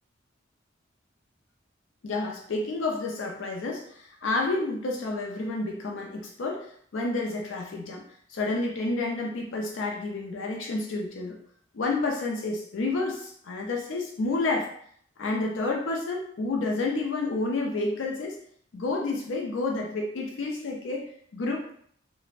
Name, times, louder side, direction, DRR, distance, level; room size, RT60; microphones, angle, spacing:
voice 1, 2.0-6.7 6.9-8.0 8.3-11.4 11.7-14.7 15.2-18.4 18.7-21.7, left 3 dB, 70° left, 0 dB, 0.4 m, -30 dB
3.2 x 2.1 x 2.4 m, 0.63 s
head